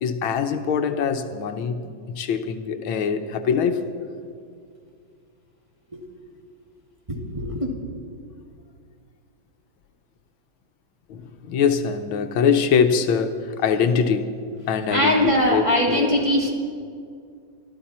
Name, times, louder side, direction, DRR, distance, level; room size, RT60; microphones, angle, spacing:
voice 1, 0.0-1.8 2.1-3.9 11.1-14.4 14.7-16.2, left 6 dB, 80° left, 8 dB, 1.6 m, -23 dB
voice 2, 7.1-7.7 14.9-16.5, left 1 dB, 15° right, -2 dB, 2.4 m, -21 dB
24.5 x 13.5 x 4.3 m, 2.3 s
omnidirectional pair, 2.2 m